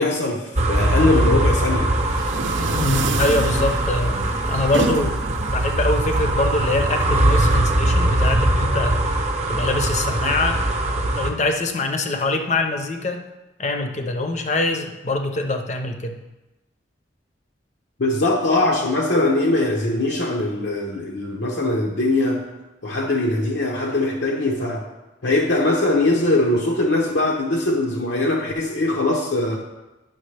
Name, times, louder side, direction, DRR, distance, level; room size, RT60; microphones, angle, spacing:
voice 1, 0.0-1.9 18.0-22.4 22.8-24.9 25.2-29.6, left 2 dB, 75° left, 0 dB, 0.8 m, -21 dB
sound 1, 0.6-11.3, right 1 dB, 35° right, 0.8 m, -21 dB
sound 2, 1.8-7.6, right 3 dB, 80° right, 0.6 m, -30 dB
voice 2, 2.7-5.2 5.5-9.0 9.5-10.6 11.1-13.3 13.6-16.2, left 2 dB, 35° left, 5 dB, 0.7 m, -24 dB
10.5 x 6.0 x 3.3 m, 1.0 s
head